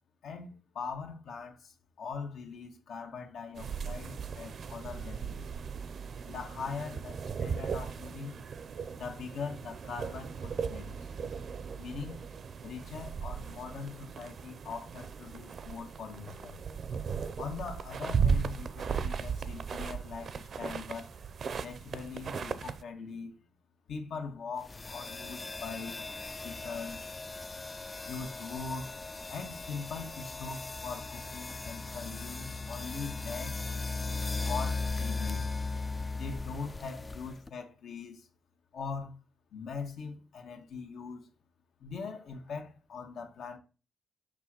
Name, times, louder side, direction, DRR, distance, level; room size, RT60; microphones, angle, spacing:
voice 1, 0.2-5.5 6.2-8.4 8.9-11.1 11.8-12.1 12.6-16.6 17.4-21.1 21.6-23.4 23.9-26.1 26.4-27.1 28.1-28.9 29.3-33.6 34.4-35.4 36.1-38.3 38.7-39.2 39.5-41.3 41.8-43.6, left 5 dB, 75° left, 1.6 m, -41 dB
sound 1, 3.6-22.8, right 6 dB, 55° right, 0.6 m, -37 dB
sound 2, 24.6-37.5, left 3 dB, 25° left, 0.4 m, -38 dB
5.9 x 3.8 x 6.2 m
cardioid pair, 105°, 0 cm